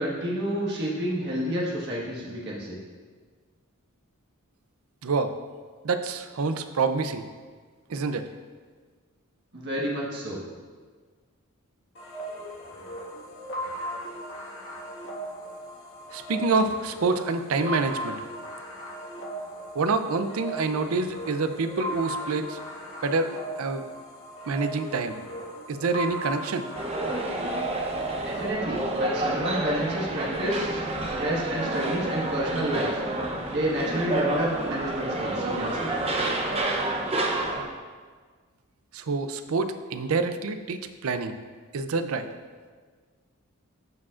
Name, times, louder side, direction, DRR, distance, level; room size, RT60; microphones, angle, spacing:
voice 1, 0.0-2.8 9.5-10.4 28.2-30.8 31.1-33.0 33.5-35.9, right 1 dB, 50° right, -4 dB, 1.5 m, -30 dB
voice 2, 5.0-5.3 5.8-7.2 7.9-8.2 16.1-18.2 19.7-22.6 23.0-23.3 23.6-23.8 24.5-25.2 25.7-26.7 38.9-41.3 41.7-42.3, right 4 dB, 75° right, 9 dB, 0.5 m, -27 dB
sound 1, 11.9-28.5, equal, 60° left, 1.6 m, -37 dB
sound 2, 26.7-37.6, right 2 dB, 30° right, 0.7 m, -29 dB
14.0 x 4.9 x 2.5 m, 1.5 s
head